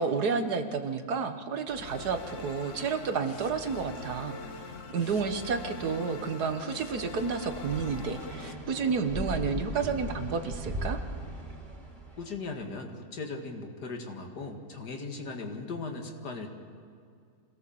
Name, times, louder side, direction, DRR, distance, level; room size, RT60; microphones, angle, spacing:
voice 1, 0.0-4.4 4.9-11.0, right 5 dB, 75° right, 8 dB, 1.8 m, -30 dB
sound 1, 1.7-8.5, left 3 dB, 55° left, 1.4 m, -43 dB
sound 2, 7.4-12.3, right 1 dB, 30° right, 3.6 m, -38 dB
voice 2, 12.2-16.5, left 3 dB, 90° left, 3 dB, 2.4 m, -38 dB
26.0 x 17.5 x 7.1 m, 2.2 s
omnidirectional pair, 1.7 m